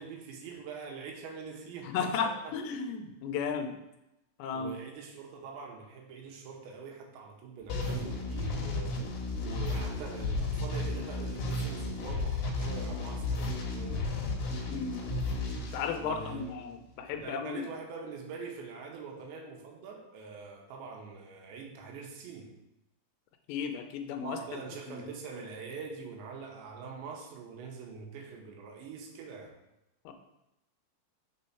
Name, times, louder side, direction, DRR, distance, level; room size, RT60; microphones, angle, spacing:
voice 1, 0.0-2.6 4.5-9.0 9.4-14.1 15.9-16.6 17.1-22.5 24.2-29.6, right 5 dB, 80° right, 1 dB, 3.3 m, -44 dB
voice 2, 1.8-3.8 4.4-4.7 14.7-15.0 15.7-17.6 23.5-24.6 24.9-25.0 30.1-30.2, left 6 dB, 80° left, 6 dB, 2.9 m, -34 dB
sound 1, 7.7-16.6, left 2 dB, 65° left, 2.6 m, -33 dB
6.9 x 4.3 x 5.7 m, 0.90 s
omnidirectional pair, 5.1 m